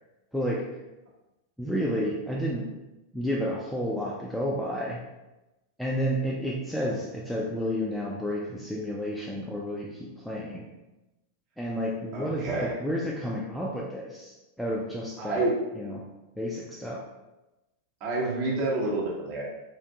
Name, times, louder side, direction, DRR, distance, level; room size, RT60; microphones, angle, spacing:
voice 1, 0.3-0.7 1.6-2.7 3.1-5.0 5.8-10.7 11.6-15.5 15.7-16.1 16.4-17.0, equal, ahead, -4 dB, 0.3 m, -31 dB
voice 2, 12.1-12.7 15.2-15.5 18.0-19.4, right 2 dB, 40° right, -4 dB, 0.8 m, -28 dB
2.5 x 2.2 x 2.6 m, 1.0 s
figure-of-eight pair, 90°, 0 cm